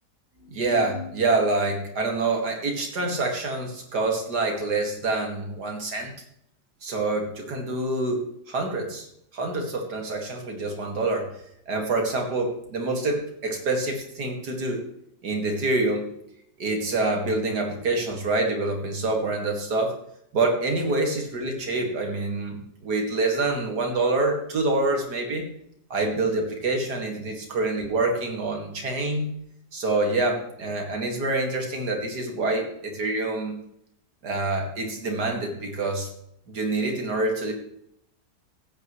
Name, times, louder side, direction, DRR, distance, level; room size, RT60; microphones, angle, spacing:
voice 1, 0.4-6.1 6.8-9.1 9.3-11.3 11.7-14.8 15.2-16.1 16.6-20.0 20.3-25.4 25.9-29.3 29.7-33.5 34.2-36.1 36.5-37.5, right 2 dB, 80° right, 2 dB, 2.7 m, -26 dB
15.5 x 8.9 x 3.2 m, 0.72 s
omnidirectional pair, 1.7 m